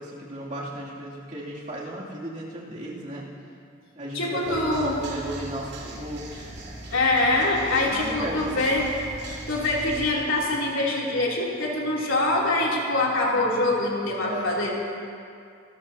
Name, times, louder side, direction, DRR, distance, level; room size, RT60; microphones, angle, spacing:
voice 1, 0.0-3.3 3.9-6.5 7.9-8.6 14.2-14.5, right 1 dB, 35° right, -6 dB, 2.8 m, -35 dB
voice 2, 4.1-5.0 6.9-8.9 9.3-14.7, left 2 dB, 80° left, -4 dB, 3.2 m, -24 dB
sound 1, 4.4-10.1, right 1 dB, 55° right, 2.6 m, -40 dB
25.5 x 14.5 x 2.9 m, 2.4 s
head